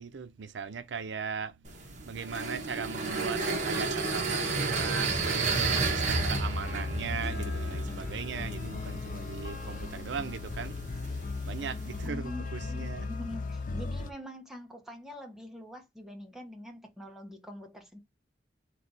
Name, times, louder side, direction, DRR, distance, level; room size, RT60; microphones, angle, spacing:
voice 1, 0.0-10.8 11.4-13.1, right 6 dB, 85° right, 0.5 m, -38 dB
sound 1, 1.7-12.1, right 3 dB, 45° right, 1.1 m, -33 dB
sound 2, 6.0-14.1, left 3 dB, 50° left, 0.5 m, -37 dB
voice 2, 12.0-18.0, left 1 dB, 5° right, 1.0 m, -44 dB
3.3 x 3.2 x 3.9 m
head